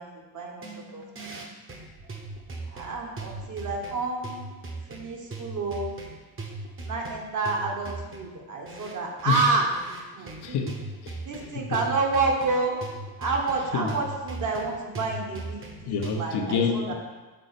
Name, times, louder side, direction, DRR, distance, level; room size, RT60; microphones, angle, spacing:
voice 1, 0.0-1.4 2.0-2.1 2.7-4.5 4.9-6.0 6.8-9.7 10.1-10.5 11.2-12.8 13.2-16.9, right 3 dB, 50° right, 0 dB, 1.3 m, -29 dB
sound 1, 0.6-16.1, right 3 dB, 30° right, 1.0 m, -39 dB
voice 2, 10.2-11.2 11.6-11.8 13.7-13.9 15.9-16.9, left 5 dB, 75° left, 3 dB, 0.9 m, -28 dB
6.6 x 4.1 x 4.1 m, 1.2 s
cardioid pair, 115°, 40 cm